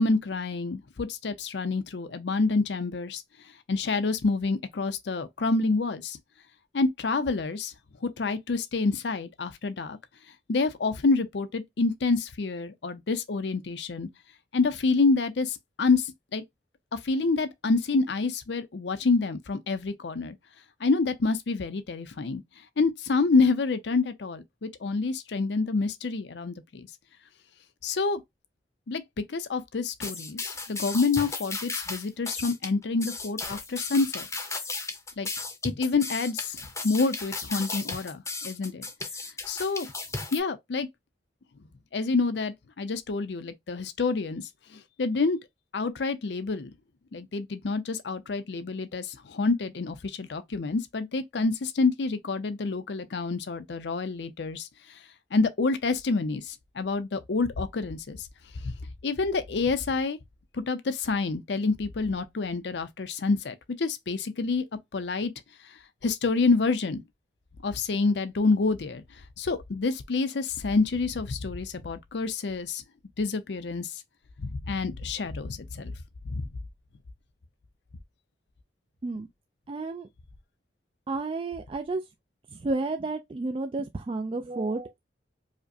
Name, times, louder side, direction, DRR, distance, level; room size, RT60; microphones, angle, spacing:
voice 1, 0.0-3.2 3.7-6.2 6.7-7.7 8.0-10.0 10.5-14.1 14.5-16.4 16.9-20.4 20.8-22.4 22.8-26.9 27.8-28.2 28.9-29.0 29.3-34.3 35.2-35.3 35.6-36.6 36.8-38.9 39.5-39.9 40.3-40.9 41.9-44.4 45.0-45.4 45.7-46.7 47.1-54.7 55.3-58.3 58.6-58.7 59.0-60.2 60.5-64.6 64.9-65.3 66.0-67.0 67.6-69.0 69.4-72.8 73.2-73.9 74.4-75.9 76.2-76.4, left 3 dB, 70° left, 0.6 m, -27 dB
sound 1, 30.0-40.4, left 3 dB, 15° left, 0.7 m, -35 dB
voice 2, 79.7-80.1 81.1-82.0 82.5-85.0, right 3 dB, 30° right, 0.3 m, -31 dB
4.9 x 2.1 x 2.6 m
head